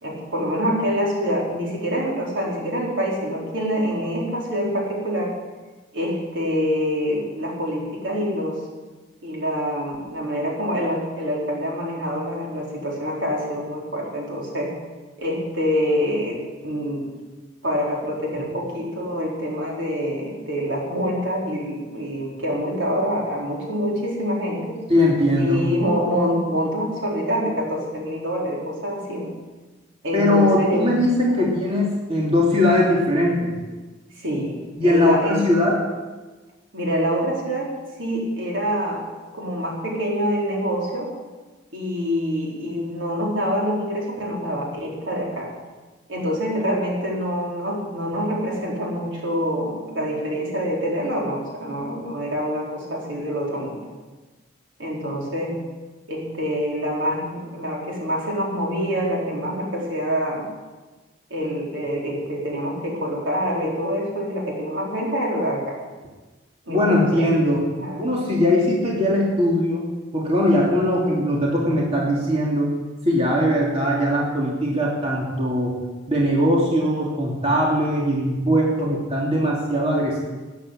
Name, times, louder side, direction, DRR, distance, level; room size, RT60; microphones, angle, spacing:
voice 1, 0.0-5.3 5.9-8.6 9.2-14.7 15.2-17.1 17.6-24.8 25.4-29.3 30.0-30.9 31.4-31.5 34.2-35.5 36.7-37.7 38.0-39.0 39.3-41.1 41.7-45.5 46.1-53.8 54.8-55.6 56.1-60.5 61.3-65.8 66.6-67.5 67.7-68.0, equal, 75° right, -3 dB, 4.5 m, -26 dB
voice 2, 24.9-25.6 30.1-33.5 34.8-35.8 66.7-67.6 68.0-69.9 70.1-72.7 73.0-75.8 76.1-80.2, left 1 dB, 30° right, -4 dB, 2.8 m, -20 dB
13.0 x 10.5 x 8.7 m, 1.3 s
head